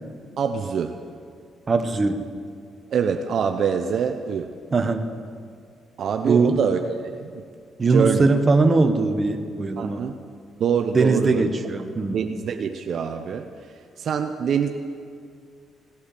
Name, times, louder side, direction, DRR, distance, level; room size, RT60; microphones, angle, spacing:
voice 1, 0.4-0.9 2.9-4.5 6.0-6.8 7.1-7.4 7.9-8.3 9.8-10.1 10.6-11.5 12.1-13.5 14.0-14.7, right 7 dB, 60° right, 6 dB, 0.7 m, -24 dB
voice 2, 1.7-2.3 4.7-5.0 6.2-6.7 7.8-10.1 10.9-12.3, right 3 dB, 30° right, 7 dB, 1.1 m, -21 dB
17.5 x 8.4 x 6.7 m, 2.2 s
cardioid pair, 90°, 0 cm